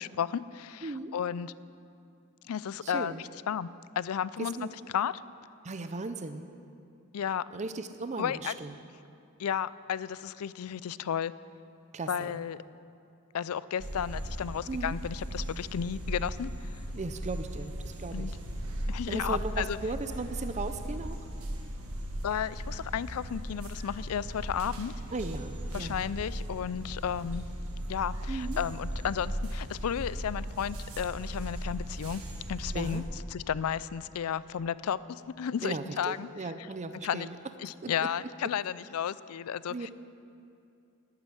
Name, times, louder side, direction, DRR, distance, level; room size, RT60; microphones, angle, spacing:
voice 1, 0.0-1.5 2.5-3.7 4.0-5.1 7.1-7.4 8.2-8.5 9.4-11.3 12.1-12.6 13.3-16.7 18.1-18.3 18.9-19.8 22.2-24.9 25.7-27.5 27.9-32.2 32.5-33.0 33.3-36.3 37.0-37.3 37.6-39.9, left 8 dB, 75° left, 18 dB, 0.4 m, -33 dB
voice 2, 0.8-1.1 2.8-3.2 4.6-4.7 5.6-6.5 7.5-8.8 11.9-12.4 14.7-15.0 16.9-18.4 19.1-21.2 25.1-26.0 28.3-28.6 32.7-33.0 35.6-37.4 37.8-37.9 39.7-39.9, right 3 dB, 30° right, 9 dB, 0.5 m, -37 dB
sound 1, 13.8-33.0, equal, 75° right, 1.7 m, -37 dB
10.5 x 9.7 x 9.9 m, 2.5 s
head